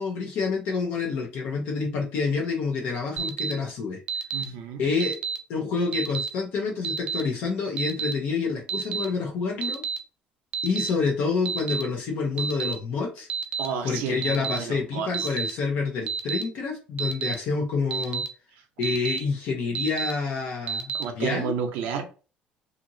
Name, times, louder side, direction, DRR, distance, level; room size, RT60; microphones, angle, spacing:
voice 1, 0.0-4.0 4.8-5.2 5.5-9.8 10.6-13.3 13.8-18.2 18.8-21.5, left 4 dB, 70° left, 0 dB, 0.7 m, -28 dB
Alarm, 3.2-3.5 4.1-4.4 5.0-5.4 5.9-6.3 6.8-7.2 7.8-8.1 8.7-9.1 9.6-10.0 10.5-10.9 11.5-11.8 12.4-12.7 13.3-13.7 14.2-14.6 15.1-15.5 16.1-16.4 17.0-17.3 17.9-18.3 18.8-19.2 19.8-20.1 20.7-21.0, right 6 dB, 40° right, 0.4 m, -29 dB
voice 2, 4.3-4.9 13.6-15.4 20.9-22.1, right 7 dB, 90° right, 5 dB, 0.6 m, -31 dB
2.8 x 2.5 x 2.6 m, 0.35 s
cardioid pair, 150°, 3 cm